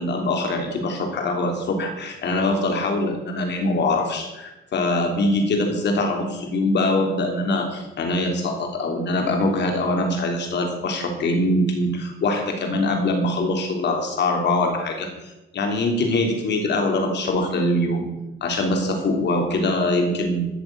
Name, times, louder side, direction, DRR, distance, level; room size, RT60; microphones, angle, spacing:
voice 1, 0.0-15.1 15.5-18.1 18.4-20.5, left 2 dB, 60° left, 3 dB, 3.3 m, -23 dB
13.5 x 7.3 x 8.8 m, 0.99 s
cardioid pair, 90°, 20 cm